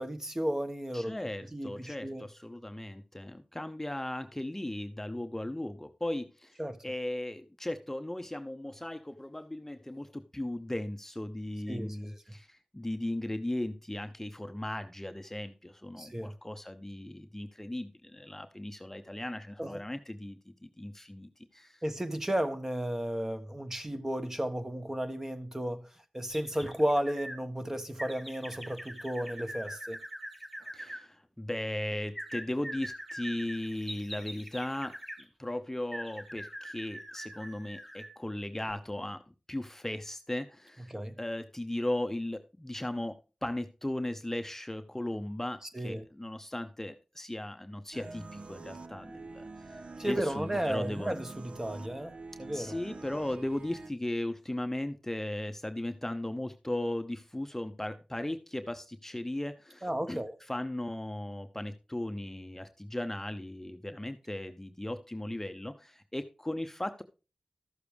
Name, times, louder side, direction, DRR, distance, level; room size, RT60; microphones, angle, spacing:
voice 1, 0.0-1.1 1.5-2.2 6.6-6.8 11.7-12.2 16.0-16.3 19.6-19.8 21.8-30.0 40.9-41.2 45.7-46.0 50.0-52.7 59.8-60.4, right 1 dB, 20° right, 1.4 m, -33 dB
voice 2, 0.9-21.8 30.7-35.0 35.4-39.2 39.5-43.2 43.4-51.1 52.5-60.2 60.5-67.0, left 1 dB, 15° left, 0.8 m, -37 dB
sound 1, 26.3-27.4 28.0-31.0 32.1-35.2 35.9-38.2 38.6-38.7, equal, ahead, 1.4 m, -43 dB
sound 2, 47.9-53.9, right 3 dB, 60° right, 0.6 m, -46 dB
13.5 x 6.7 x 3.3 m
cardioid pair, 40°, 2 cm